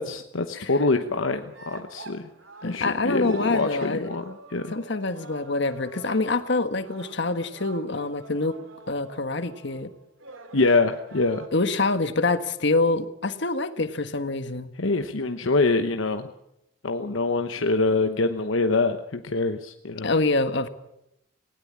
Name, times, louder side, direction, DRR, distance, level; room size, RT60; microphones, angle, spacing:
voice 1, 0.0-2.3 2.6-4.7 10.5-11.4 14.8-16.3 16.8-20.1, left 3 dB, 75° left, 6 dB, 1.0 m, -25 dB
sound 1, 1.5-11.5, right 3 dB, 75° right, 2.7 m, -45 dB
voice 2, 2.6-4.1 4.7-8.6 8.9-9.9 11.5-14.7 20.0-20.7, left 3 dB, 60° left, 9 dB, 1.5 m, -26 dB
19.0 x 17.5 x 8.7 m, 0.84 s
head